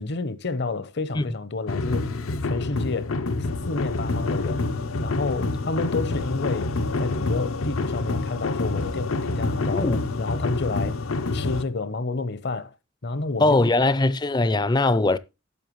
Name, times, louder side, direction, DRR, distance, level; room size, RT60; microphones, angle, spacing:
voice 1, 0.0-2.2 2.4-3.2 3.7-4.7 5.0-9.9 10.2-11.0 11.3-12.7 13.0-13.7, left 3 dB, 55° left, 0.7 m, -30 dB
sound 1, 1.7-11.6, left 3 dB, 85° left, 0.7 m, -27 dB
voice 2, 9.6-10.0 13.4-15.2, left 2 dB, 20° left, 0.4 m, -21 dB
12.0 x 7.4 x 3.1 m
head